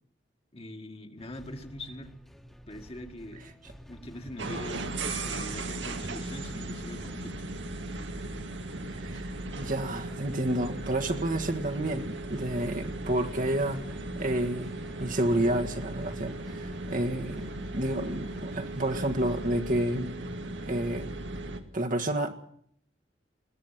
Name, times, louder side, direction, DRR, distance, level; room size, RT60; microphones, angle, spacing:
voice 1, 0.5-2.1 2.7-3.4 3.9-5.0 5.2-7.5, left 1 dB, 35° left, 4 dB, 2.0 m, -42 dB
sound 1, 1.2-19.9, equal, ahead, 1.7 m, -51 dB
sound 2, 4.4-21.6, right 2 dB, 85° right, 2.2 m, -37 dB
voice 2, 9.0-14.7 15.0-17.5 17.7-20.1 20.7-21.1 21.7-22.3, right 1 dB, 50° right, 5 dB, 1.7 m, -30 dB
21.5 x 16.5 x 7.5 m, 0.65 s
head